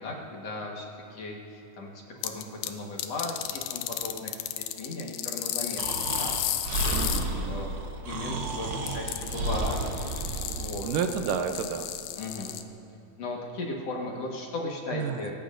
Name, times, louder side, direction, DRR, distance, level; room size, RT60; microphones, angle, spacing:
voice 1, 0.0-4.3 4.6-6.4 6.9-7.1 7.4-7.8 8.1-9.8 10.4-10.9 12.2-12.6 13.2-15.3, left 2 dB, 55° left, -1 dB, 2.3 m, -36 dB
sound 1, 2.2-2.7 3.0-7.3 8.9-12.6, left 12 dB, 85° left, 2.4 m, -33 dB
Breathing, 5.8-10.9, right 2 dB, 55° right, 1.5 m, -32 dB
voice 2, 6.9-7.7 10.8-11.9 14.9-15.3, right 7 dB, 80° right, 7 dB, 2.3 m, -31 dB
27.5 x 15.0 x 2.6 m, 3.0 s
omnidirectional pair, 3.9 m